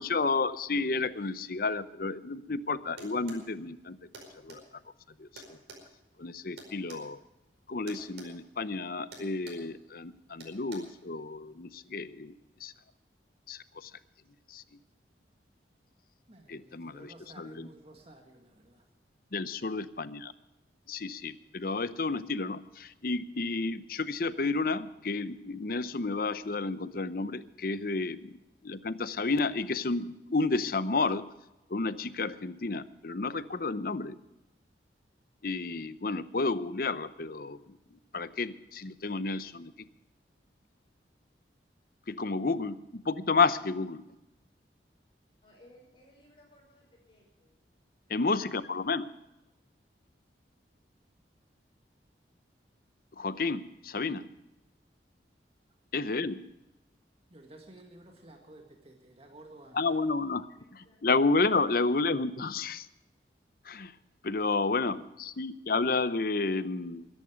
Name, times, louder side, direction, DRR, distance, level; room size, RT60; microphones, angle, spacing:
voice 1, 0.0-4.0 4.4-4.6 5.2-5.6 6.2-7.2 7.7-12.3 12.6-12.7 13.5-13.9 14.5-14.6 16.5-17.7 19.3-20.3 20.9-28.4 28.6-31.3 31.7-34.2 35.4-37.8 38.1-39.9 42.1-44.0 48.1-49.1 53.1-54.3 55.9-56.5 59.7-60.5 60.7-62.9 63.6-63.9 64.2-67.1, left 3 dB, 50° left, 14 dB, 0.7 m, -31 dB
sound 1, 3.0-3.5 4.1-4.6 5.4-7.1 7.9-8.3 8.6-8.8 9.1-9.7 10.4-10.8, right 3 dB, 80° right, 5.0 m, -47 dB
voice 2, 16.3-18.6 57.3-59.8, right 1 dB, 35° right, 2 dB, 1.9 m, -53 dB
voice 3, 45.4-47.5 48.1-48.3 60.6-61.0, left 1 dB, 30° left, -3 dB, 5.8 m, -60 dB
22.0 x 11.0 x 5.1 m, 0.97 s
head